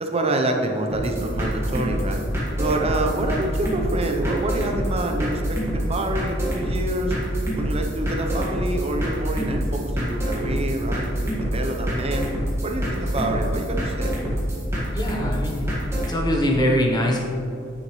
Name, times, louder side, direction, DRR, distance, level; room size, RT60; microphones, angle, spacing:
voice 1, 0.0-2.2 2.6-7.2 7.5-11.2 11.5-12.3 12.6-14.2, right 2 dB, 30° right, 3 dB, 0.7 m, -27 dB
sound 1, 0.9-16.2, equal, 15° right, 1.7 m, -26 dB
voice 2, 14.9-15.7 16.1-17.2, equal, 20° left, -1 dB, 1.0 m, -23 dB
8.9 x 6.8 x 3.2 m, 2.6 s
head